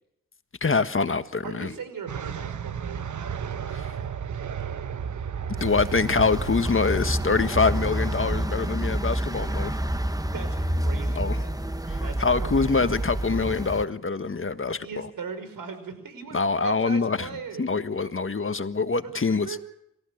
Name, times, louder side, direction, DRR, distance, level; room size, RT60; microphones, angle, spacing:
voice 1, 0.6-1.7 3.7-3.9 5.6-9.8 11.1-11.4 11.9-15.1 16.3-17.3 17.6-19.6, left 4 dB, 40° left, 10 dB, 1.6 m, -25 dB
voice 2, 1.4-3.7 10.3-11.6 12.0-13.0 14.8-17.7 19.0-19.6, right 6 dB, 80° right, 9 dB, 5.6 m, -39 dB
sound 1, 2.1-8.7, right 7 dB, 60° right, 1.1 m, -34 dB
sound 2, 5.6-13.8, right 1 dB, 10° right, 1.3 m, -28 dB
28.0 x 15.0 x 6.6 m, 0.75 s
cardioid pair, 50°, 33 cm